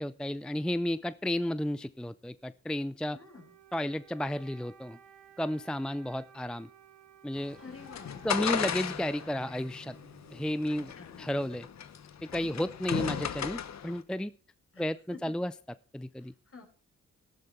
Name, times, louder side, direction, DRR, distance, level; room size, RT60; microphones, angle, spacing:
voice 1, 0.0-3.2 3.7-5.0 5.4-6.7 7.2-7.6 8.2-10.0 10.3-10.9 11.2-11.7 12.2-14.3 14.8-15.5 15.9-16.3, left 1 dB, 5° left, 16 dB, 0.5 m, -32 dB
voice 2, 3.1-3.5 7.6-8.5 10.7-11.2 14.7-14.8 15.1-15.3 16.2-16.6, left 4 dB, 50° left, 2 dB, 5.0 m, -50 dB
Wind instrument woodwind instrument, 3.1-10.7, right 9 dB, 85° right, 1.6 m, -58 dB
sound 1, 7.4-14.0, left 8 dB, 65° left, 1.1 m, -36 dB
sound 2, 8.6-12.6, right 1 dB, 20° right, 2.0 m, -53 dB
12.5 x 12.0 x 4.3 m, 0.40 s
supercardioid pair, 55°, 29 cm